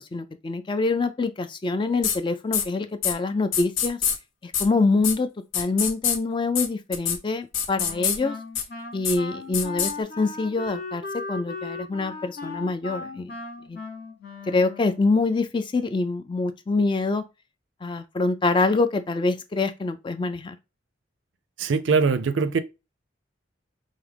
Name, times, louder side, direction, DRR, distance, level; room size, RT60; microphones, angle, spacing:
voice 1, 0.0-4.0 4.4-5.3 5.5-8.4 8.9-13.3 13.7-13.8 14.5-17.2 17.8-20.6, left 3 dB, 25° left, 0.3 m, -25 dB
sound 1, 2.0-2.2 2.5-2.6 3.0-3.1 3.5-4.2 4.5-4.7 5.0-5.1 5.5-6.2 6.6-6.7 6.9-7.2 7.5-8.2 8.6-8.7 9.0-9.2 9.5-9.9, left 8 dB, 85° left, 0.7 m, -24 dB
Wind instrument woodwind instrument, 7.8-15.2, left 3 dB, 50° left, 0.9 m, -37 dB
voice 2, 21.6-22.6, right 5 dB, 70° right, 0.4 m, -22 dB
4.7 x 2.1 x 3.3 m
head